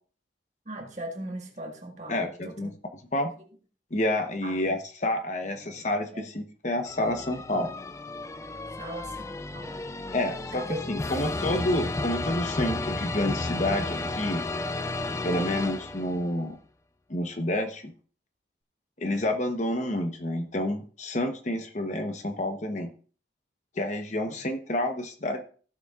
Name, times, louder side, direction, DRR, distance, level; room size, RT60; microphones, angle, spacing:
voice 1, 0.6-2.7 3.4-3.5 4.4-4.6 5.4-5.8 6.1-6.2 8.8-9.8 10.5-10.8 24.2-24.4, right 1 dB, 40° right, 2 dB, 1.7 m, -40 dB
voice 2, 2.1-2.7 3.1-3.3 3.9-7.7 10.1-14.4 15.2-16.6 17.1-17.9 19.0-22.9 23.8-25.4, left 1 dB, 40° left, 5 dB, 1.0 m, -29 dB
sound 1, 6.8-16.3, left 2 dB, 15° left, 0.3 m, -33 dB
15.5 x 6.8 x 2.4 m, 0.41 s
head